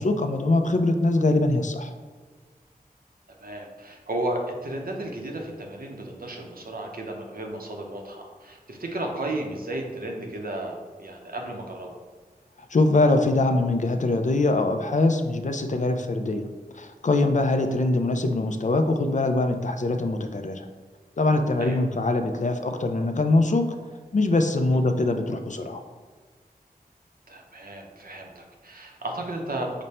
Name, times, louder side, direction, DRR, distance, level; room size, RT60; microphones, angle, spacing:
voice 1, 0.0-1.9 12.7-16.5 16.7-20.7 21.2-23.7 24.1-25.8, left 2 dB, 50° left, 6 dB, 0.4 m, -23 dB
voice 2, 3.4-12.0 21.6-21.8 27.3-29.8, right 1 dB, 70° right, 1 dB, 0.7 m, -33 dB
5.1 x 2.2 x 4.2 m, 1.5 s
wide cardioid pair, 55°, 16 cm